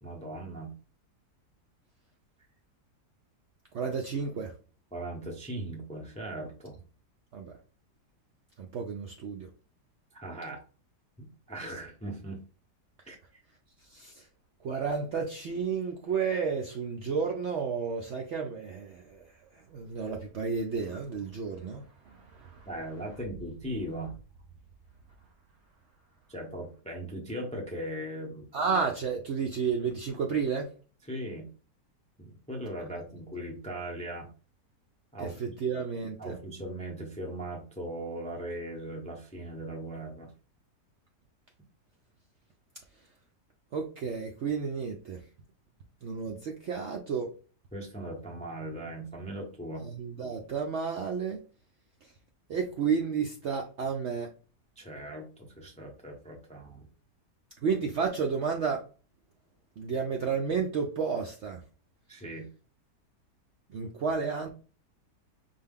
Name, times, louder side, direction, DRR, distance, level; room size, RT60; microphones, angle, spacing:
voice 1, 0.0-0.7 4.9-6.7 10.1-10.6 11.2-12.4 13.1-13.4 22.7-24.1 26.3-28.5 31.1-31.5 32.2-34.3 35.1-35.5 36.2-40.3 47.7-49.9 54.8-56.9 62.1-62.5, right 1 dB, 5° left, 0 dB, 0.5 m, -39 dB
voice 2, 3.7-4.5 7.3-7.5 8.6-9.5 13.9-14.2 14.6-19.3 19.7-22.6 28.5-30.7 35.2-36.4 43.7-45.2 46.0-47.3 49.8-51.4 52.5-54.3 57.6-58.8 59.8-61.6 63.7-64.5, right 5 dB, 65° right, 2 dB, 0.7 m, -31 dB
5.4 x 2.3 x 3.5 m, 0.37 s
omnidirectional pair, 1.7 m